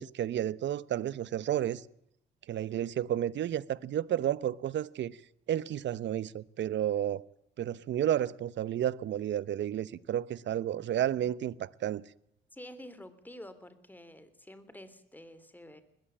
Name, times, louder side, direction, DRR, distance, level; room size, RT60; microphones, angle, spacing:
voice 1, 0.0-1.8 2.5-5.2 5.5-7.2 7.6-12.0, right 11 dB, 65° right, 0.9 m, -31 dB
voice 2, 12.5-15.8, left 1 dB, 10° left, 3.2 m, -49 dB
20.5 x 15.0 x 8.6 m
cardioid pair, 90°, 20 cm